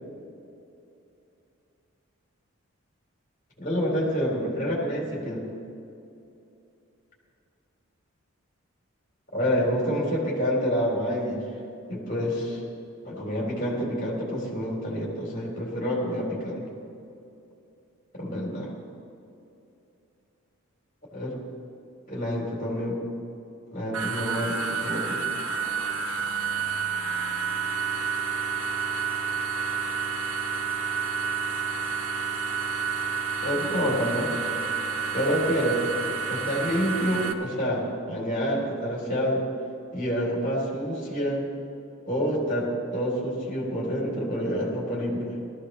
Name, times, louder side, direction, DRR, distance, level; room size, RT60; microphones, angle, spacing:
voice 1, 3.6-5.4 9.3-11.4 11.9-12.6 13.0-16.6 18.2-18.7 21.1-21.4 22.1-23.0 23.7-25.2 33.4-34.3 35.1-35.8 36.3-39.4 39.9-41.4 42.1-45.4, equal, 35° left, -4 dB, 3.8 m, -28 dB
sound 1, 23.9-37.3, right 5 dB, 70° right, 1.0 m, -29 dB
18.0 x 14.5 x 3.3 m, 2.7 s
head